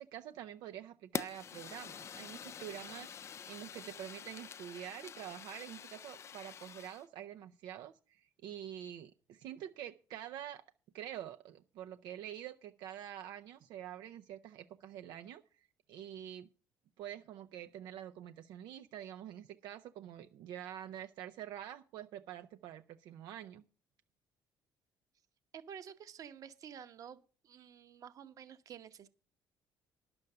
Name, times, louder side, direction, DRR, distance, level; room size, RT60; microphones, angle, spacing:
voice 1, 0.0-10.6 10.9-16.5 17.0-23.6, right 11 dB, 80° right, 7 dB, 0.6 m, -47 dB
Fire, 1.1-7.0, left 7 dB, 40° left, 0.5 m, -46 dB
voice 2, 25.5-29.1, right 8 dB, 55° right, 11 dB, 1.0 m, -50 dB
10.5 x 7.0 x 6.7 m, 0.37 s
cardioid pair, 110°, 7 cm